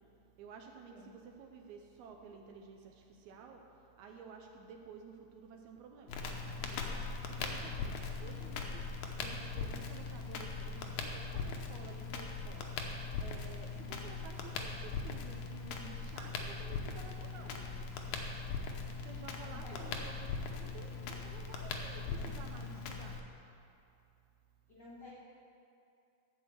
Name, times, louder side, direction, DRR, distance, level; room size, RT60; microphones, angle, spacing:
voice 1, 0.4-3.6 4.0-6.2 6.6-7.0 7.3-12.7 13.2-17.6 19.0-23.2, right 5 dB, 80° right, 3 dB, 1.9 m, -53 dB
Crackle, 6.1-23.2, left 4 dB, 75° left, 2.1 m, -40 dB
voice 2, 19.4-20.0 21.8-22.4 24.7-25.1, left 2 dB, 50° left, -8 dB, 1.2 m, -54 dB
12.5 x 4.6 x 7.7 m, 2.6 s
omnidirectional pair, 3.7 m